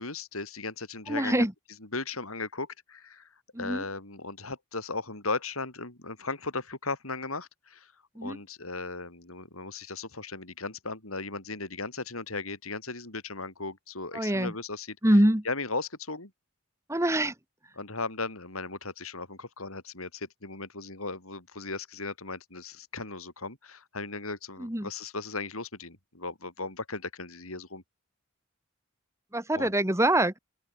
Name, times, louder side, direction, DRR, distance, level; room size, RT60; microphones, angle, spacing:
voice 1, 0.0-1.5 1.9-3.3 3.6-7.9 8.2-15.0 15.4-16.3 17.8-27.8 29.5-29.7, left 3 dB, 85° left, 6.6 m, -37 dB
voice 2, 1.1-1.5 3.5-3.8 8.2-8.4 14.1-14.5 15.0-15.4 16.9-17.3 24.6-24.9 29.3-30.3, right 1 dB, 15° right, 2.0 m, -24 dB
open air
head